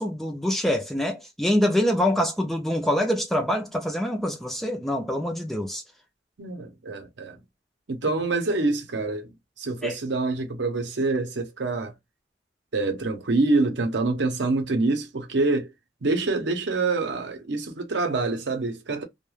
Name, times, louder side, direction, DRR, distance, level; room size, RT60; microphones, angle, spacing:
voice 1, 0.0-5.8 9.8-9.9, left 1 dB, ahead, 0.3 m, -25 dB
voice 2, 6.4-7.4 7.9-9.3 9.6-11.9 12.7-15.7 16.0-19.0, right 3 dB, 70° right, 0.6 m, -26 dB
2.3 x 2.2 x 3.1 m
head